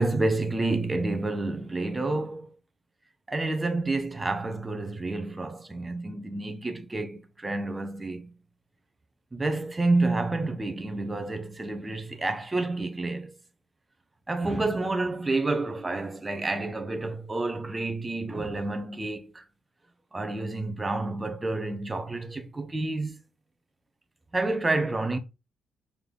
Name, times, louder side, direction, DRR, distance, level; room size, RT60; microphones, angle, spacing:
voice 1, 0.0-2.5 3.3-8.3 9.3-13.3 14.3-19.4 20.1-23.2 24.3-25.2, right 2 dB, 20° right, 1.2 m, -29 dB
5.8 x 4.5 x 3.6 m
cardioid pair, 100°, 0 cm